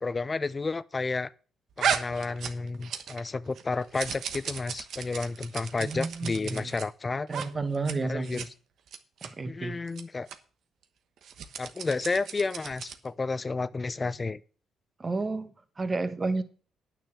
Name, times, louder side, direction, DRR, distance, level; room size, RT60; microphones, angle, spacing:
voice 1, 0.0-1.3 1.8-7.3 8.0-8.5 9.4-10.3 11.6-14.4, left 3 dB, 30° left, 0.6 m, -31 dB
sound 1, 1.8-3.3 3.6-6.9 7.3-7.5 7.7-8.0 8.2-8.5 8.9-9.3 9.9-10.0 10.3-10.4 11.2-13.1, right 7 dB, 70° right, 1.1 m, -35 dB
voice 2, 5.8-6.7 7.3-8.4 9.2-9.8 15.0-16.4, right 3 dB, 30° right, 1.3 m, -31 dB
9.3 x 6.7 x 7.3 m
cardioid pair, 90°, 0 cm